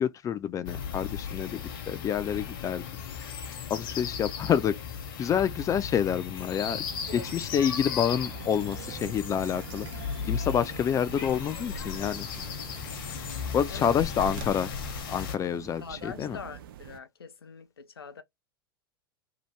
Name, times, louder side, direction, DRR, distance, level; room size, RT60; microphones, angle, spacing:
voice 1, 0.0-1.6 1.9-2.8 3.2-3.3 3.7-4.8 5.2-6.8 7.1-9.9 10.3-12.3 13.5-14.7 15.1-16.4, left 8 dB, 25° left, 0.4 m, -28 dB
sound 1, 0.7-15.4, left 7 dB, 65° left, 0.9 m, -36 dB
sound 2, 6.6-17.0, right 10 dB, 70° right, 0.4 m, -46 dB
sound 3, 8.4-14.5, right 9 dB, 45° right, 0.9 m, -53 dB
voice 2, 13.7-14.3 15.8-18.2, left 6 dB, 90° left, 0.5 m, -43 dB
2.8 x 2.4 x 3.2 m
hypercardioid pair, 90°, 12 cm